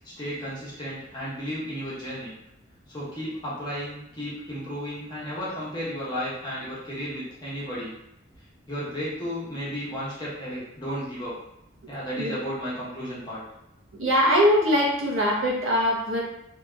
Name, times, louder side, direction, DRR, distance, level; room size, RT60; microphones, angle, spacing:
voice 1, 0.2-2.3 2.9-7.9 8.7-11.3 11.9-13.4, equal, 20° left, -8 dB, 1.0 m, -33 dB
voice 2, 13.9-16.2, equal, 90° right, -3 dB, 0.8 m, -22 dB
2.8 x 2.7 x 2.3 m, 0.84 s
head